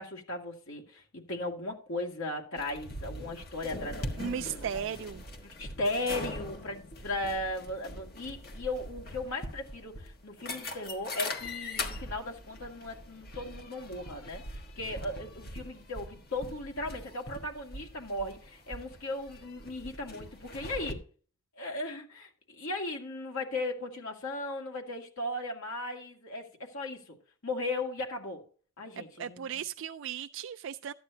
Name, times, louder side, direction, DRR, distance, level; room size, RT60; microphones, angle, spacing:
voice 1, 0.0-4.8 5.4-14.4 14.8-21.0 21.6-26.5 26.7-27.2 27.4-28.4 28.8-29.5, left 2 dB, 75° left, 2.3 m, -37 dB
sound 1, 2.6-20.9, left 2 dB, 45° left, 1.5 m, -42 dB
voice 2, 4.2-5.2 29.0-30.9, right 8 dB, 65° right, 0.3 m, -36 dB
13.0 x 9.3 x 2.8 m
head